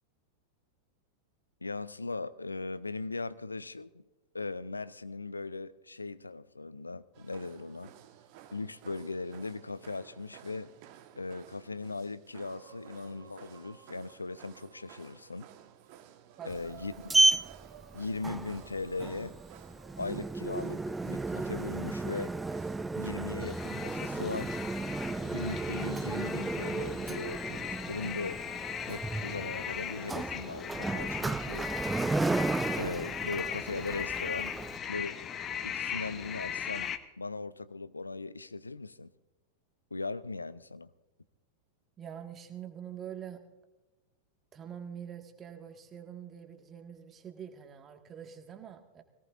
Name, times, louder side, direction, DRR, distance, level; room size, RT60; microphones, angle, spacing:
voice 1, 1.6-3.9 4.3-7.9 8.5-10.7 11.2-15.5 16.5-17.1 17.9-19.3 20.0-22.3 23.0-24.6 25.3-28.4 28.8-31.7 32.8-34.5 34.9-35.1 35.6-36.9 37.2-39.1 39.9-40.9, left 3 dB, 80° left, 17 dB, 0.5 m, -39 dB
sound 1, 7.1-23.2, right 11 dB, 45° right, 1.3 m, -54 dB
Sliding door, 16.5-34.8, right 2 dB, 10° right, 0.4 m, -33 dB
sound 2, 23.4-37.0, left 8 dB, 25° left, 0.9 m, -38 dB
voice 2, 42.0-43.4 44.5-49.0, right 8 dB, 25° right, 5 dB, 1.7 m, -45 dB
23.5 x 17.5 x 2.5 m, 1.1 s
figure-of-eight pair, 90°, 0 cm